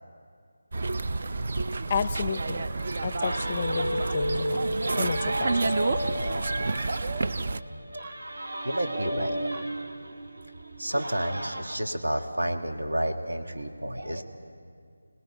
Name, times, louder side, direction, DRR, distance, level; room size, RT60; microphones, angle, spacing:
sound 1, 0.7-7.6, right 3 dB, 45° right, 0.5 m, -30 dB
voice 1, 1.9-2.6 3.0-5.9, left 6 dB, 25° left, 15 dB, 0.5 m, -32 dB
sound 2, 3.2-11.8, right 1 dB, 65° right, 1.4 m, -33 dB
voice 2, 8.6-9.4 10.8-14.2, right 1 dB, 85° right, 4 dB, 1.9 m, -30 dB
26.0 x 19.5 x 5.5 m, 2.2 s
figure-of-eight pair, 170°, 0 cm